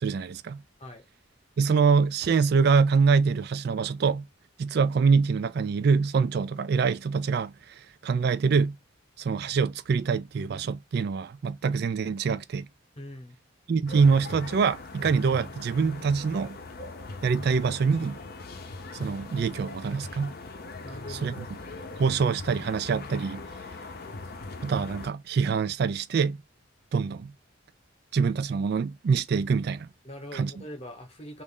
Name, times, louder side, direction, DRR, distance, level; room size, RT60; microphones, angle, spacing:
voice 1, 0.0-0.6 1.6-4.3 4.6-8.8 9.2-12.7 13.7-16.6 17.2-18.2 18.9-20.3 21.1-21.4 22.0-23.4 24.6-26.4 26.9-27.3 28.1-29.9 30.3-30.5, right 5 dB, 50° right, 0.3 m, -25 dB
voice 2, 13.0-13.4 20.8-21.5 30.0-31.4, left 1 dB, 30° left, 1.0 m, -42 dB
sound 1, 13.9-25.1, left 3 dB, 50° left, 0.6 m, -41 dB
3.2 x 2.5 x 3.7 m
head